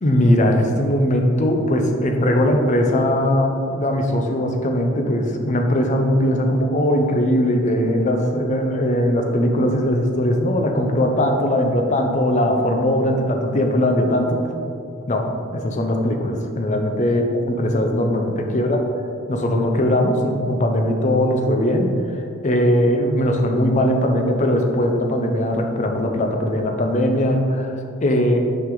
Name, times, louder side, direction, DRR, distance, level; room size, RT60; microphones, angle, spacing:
voice 1, 0.0-14.5 15.1-17.3 17.6-18.8 19.3-21.9 22.4-27.7 28.0-28.4, left 1 dB, 35° left, 3 dB, 0.6 m, -20 dB
5.8 x 5.0 x 3.8 m, 2.5 s
head